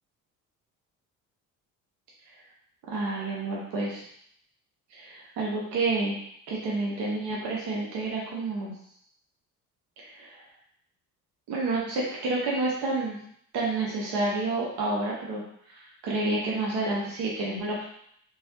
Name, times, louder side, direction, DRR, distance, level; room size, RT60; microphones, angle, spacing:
voice 1, 2.9-4.0 4.9-6.2 6.5-8.7 10.0-10.4 11.5-13.2 13.5-15.4 15.7-17.8, right 2 dB, 65° right, -4 dB, 1.0 m, -29 dB
3.1 x 2.7 x 2.8 m, 0.68 s
hypercardioid pair, 50°, 42 cm